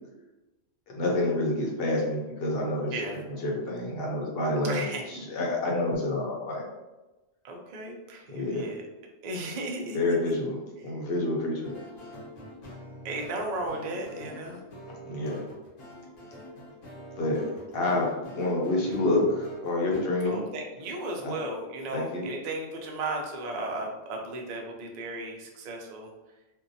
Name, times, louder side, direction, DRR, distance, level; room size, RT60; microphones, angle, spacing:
voice 1, 0.9-2.9 3.4-4.9 5.3-6.6 8.3-8.7 9.9-11.7 15.1-15.4 17.2-17.4 17.7-20.4 21.2-21.3 21.9-22.3, left 2 dB, 60° left, -2 dB, 0.8 m, -28 dB
voice 2, 2.9-3.2 4.6-5.1 7.4-8.9 9.2-10.0 10.3-10.4 10.8-11.0 13.0-14.6 20.2-26.1, right 2 dB, 70° right, 1 dB, 0.4 m, -35 dB
sound 1, 11.6-20.0, equal, 90° left, 1.2 m, -45 dB
2.6 x 2.0 x 2.6 m, 1.1 s
omnidirectional pair, 1.3 m